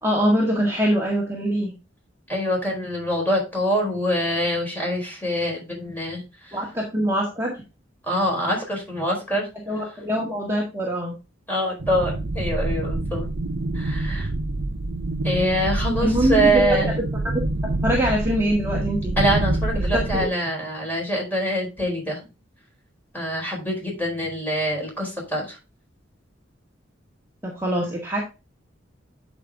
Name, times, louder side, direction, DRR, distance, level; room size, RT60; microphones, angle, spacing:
voice 1, 0.0-1.7 6.5-7.6 9.7-11.2 16.0-16.8 17.8-19.1 20.2-20.3 27.4-28.2, equal, 15° right, -3 dB, 1.8 m, -23 dB
voice 2, 2.3-6.6 8.0-9.5 11.5-13.3 13.7-14.3 15.2-16.9 19.2-22.2 23.1-25.6, equal, 10° left, -1 dB, 4.4 m, -24 dB
sound 1, 11.8-20.3, right 2 dB, 55° right, 0.7 m, -26 dB
11.5 x 5.2 x 3.6 m, 0.28 s
head